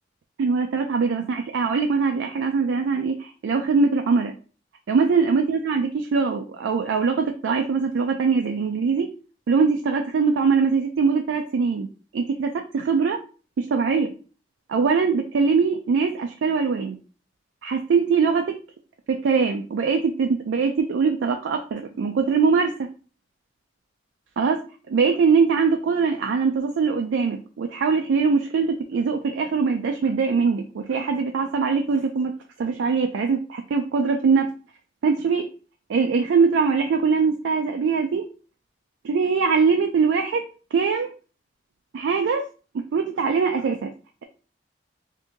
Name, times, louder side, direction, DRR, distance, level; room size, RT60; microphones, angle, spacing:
voice 1, 0.4-4.3 4.9-9.1 9.5-11.9 12.1-13.2 13.6-14.1 14.7-17.0 17.6-18.5 19.1-22.7 24.4-24.6 24.9-32.3 32.6-34.5 35.0-35.5 35.9-38.3 39.0-41.1 41.9-42.4 42.9-43.9, right 5 dB, 85° right, 4 dB, 0.4 m, -22 dB
2.8 x 2.6 x 3.6 m, 0.37 s
head